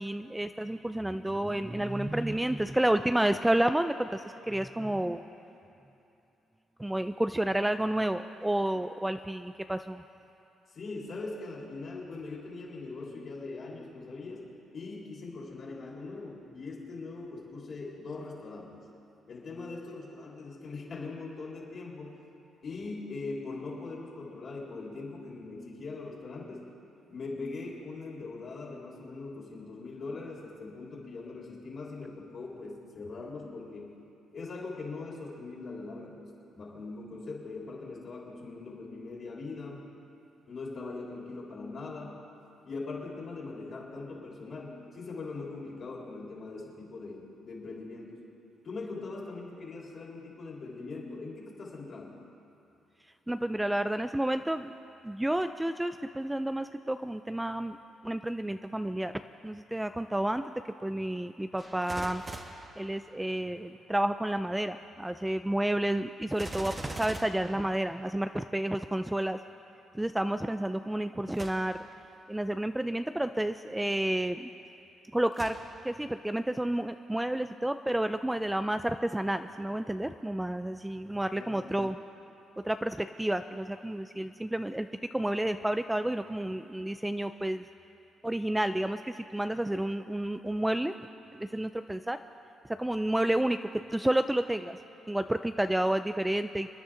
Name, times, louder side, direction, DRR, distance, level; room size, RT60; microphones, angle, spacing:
voice 1, 0.0-5.2 6.8-10.0 53.3-54.7 55.0-57.8 58.0-59.1 59.4-60.5 60.8-62.2 62.8-69.4 69.9-71.8 72.3-74.5 75.1-75.6 75.8-82.0 82.6-87.6 88.2-90.9 91.3-92.2 92.7-93.6 93.9-94.8 95.1-96.7, right 1 dB, 10° right, 9 dB, 0.4 m, -30 dB
voice 2, 10.7-14.5 14.7-18.7 19.3-22.2 22.6-26.6 27.1-34.0 34.3-39.9 40.5-42.2 42.6-48.2 48.6-52.2 81.3-82.0, left 3 dB, 50° left, -3 dB, 3.9 m, -41 dB
Gunshot gunfire, 61.6-63.6 66.3-68.4 71.3-72.0 72.6-72.7 75.3-76.1 76.6-76.7, right 2 dB, 25° right, 1.3 m, -43 dB
27.5 x 10.5 x 3.8 m, 2.8 s
cardioid pair, 90°, 0 cm